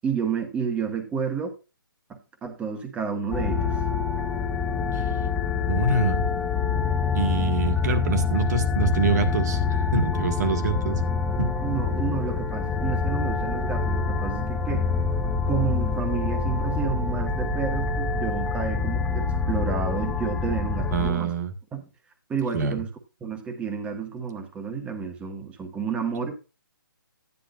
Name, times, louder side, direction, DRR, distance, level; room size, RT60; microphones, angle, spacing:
voice 1, 0.0-1.6 2.1-3.8 11.6-14.9 15.5-21.3 21.7-21.8 22.3-22.9 23.2-26.4, right 6 dB, 10° right, 1.4 m, -30 dB
sound 1, 3.3-21.1, left 5 dB, 10° left, 0.8 m, -26 dB
voice 2, 5.7-6.2 7.1-11.0 11.4-11.6 20.9-21.5 22.5-22.8, right 4 dB, 50° right, 1.9 m, -25 dB
13.0 x 10.0 x 2.6 m
hypercardioid pair, 155°, 12 cm